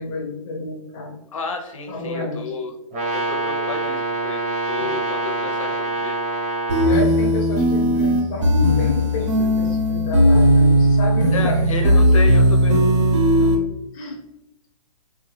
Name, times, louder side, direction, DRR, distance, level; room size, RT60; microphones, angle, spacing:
voice 1, 0.0-1.2 1.9-2.4 4.8-5.0 6.8-12.0 13.4-13.6 13.9-14.2, left 2 dB, 15° left, -2 dB, 0.6 m, -29 dB
voice 2, 1.3-2.7 3.1-6.2 11.3-12.8, left 4 dB, 60° left, 4 dB, 0.6 m, -31 dB
Brass instrument, 2.9-7.0, right 2 dB, 20° right, 0.9 m, -25 dB
sound 1, 6.7-13.6, equal, 55° right, 0.8 m, -17 dB
3.3 x 2.4 x 3.1 m, 0.89 s
hypercardioid pair, 170°, 19 cm